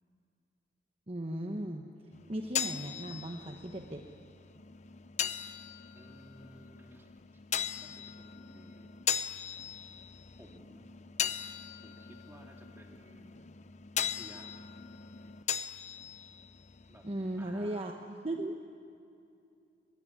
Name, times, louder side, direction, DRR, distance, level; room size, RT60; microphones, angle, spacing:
voice 1, 1.1-1.8 2.3-4.0 17.0-18.6, right 1 dB, 30° right, 3 dB, 1.2 m, -37 dB
sound 1, 2.1-17.7, left 8 dB, 40° left, 0.6 m, -39 dB
voice 2, 5.9-7.4 7.8-9.0 10.3-10.9 11.8-13.4 14.0-14.9 16.9-17.1 17.4-18.0, right 1 dB, 15° right, 2 dB, 2.3 m, -56 dB
23.0 x 20.0 x 9.9 m, 2.5 s
head